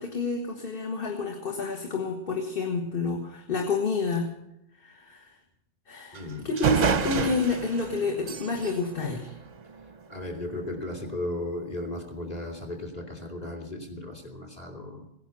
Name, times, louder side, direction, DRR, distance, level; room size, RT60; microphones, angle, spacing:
voice 1, 0.0-4.3 4.8-5.4 5.9-9.3, left 3 dB, 50° left, 1 dB, 1.7 m, -29 dB
voice 2, 6.1-6.5 10.1-15.1, left 1 dB, 35° left, 2 dB, 2.7 m, -35 dB
sound 1, 6.1-6.2 6.6-10.0, right 6 dB, 45° right, 0.7 m, -29 dB
17.0 x 10.5 x 6.9 m, 0.86 s
omnidirectional pair, 1.2 m